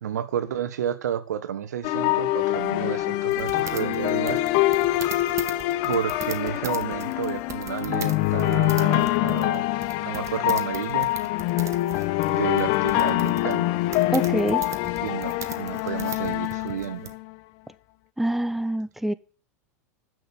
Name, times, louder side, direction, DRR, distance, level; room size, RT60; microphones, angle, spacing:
voice 1, 0.0-4.4 5.9-9.6 10.0-11.1 12.3-13.7 15.0-17.1, right 9 dB, 85° right, 1.5 m, -31 dB
sound 1, 1.8-17.3, left 17 dB, 55° left, 1.1 m, -25 dB
sound 2, 3.3-17.1, right 8 dB, 35° right, 1.8 m, -40 dB
voice 2, 14.1-14.6 18.2-19.1, right 1 dB, ahead, 0.7 m, -25 dB
13.0 x 6.5 x 8.8 m
hypercardioid pair, 110°, 9 cm